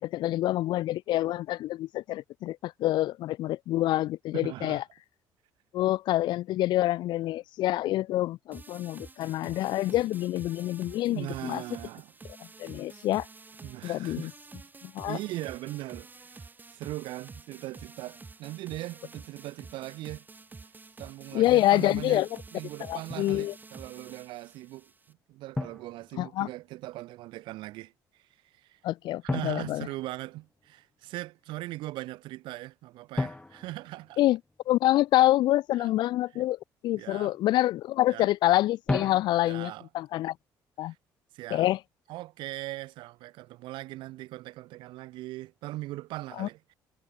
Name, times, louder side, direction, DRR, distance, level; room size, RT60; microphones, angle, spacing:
voice 1, 0.0-4.8 5.7-11.6 12.6-13.3 13.8-14.3 14.8-15.2 21.3-22.3 22.9-23.5 26.2-26.5 28.8-29.9 34.2-34.4 34.7-40.3 40.8-40.9 41.5-41.8 46.4-46.5, left 15 dB, 70° left, 0.4 m, -27 dB
voice 2, 4.3-4.8 11.1-12.1 13.6-14.3 15.1-20.2 21.0-22.3 22.5-28.2 28.5-28.8 29.3-34.2 35.8-35.9 36.3-36.5 37.0-37.3 38.1-38.3 39.4-39.9 40.8-41.0 41.3-41.7 42.1-46.7, right 18 dB, 80° right, 3.7 m, -40 dB
sound 1, 8.5-25.1, right 3 dB, 25° right, 4.0 m, -49 dB
Drum, 23.1-23.4 25.5-26.7 29.3-30.7 33.2-34.9 38.9-39.8, left 2 dB, 15° left, 1.0 m, -36 dB
cardioid pair, 90°, 8 cm